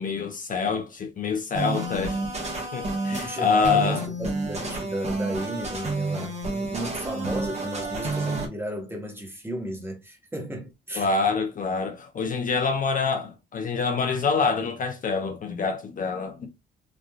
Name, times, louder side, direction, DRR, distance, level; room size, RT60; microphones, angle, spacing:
voice 1, 0.0-2.2 2.7-4.0 11.0-16.5, left 5 dB, 45° left, 0.5 m, -26 dB
sound 1, 1.5-8.5, right 2 dB, 35° right, 1.1 m, -30 dB
voice 2, 3.2-11.1, equal, 10° right, 1.1 m, -34 dB
3.1 x 2.4 x 2.3 m
cardioid pair, 90°, 20 cm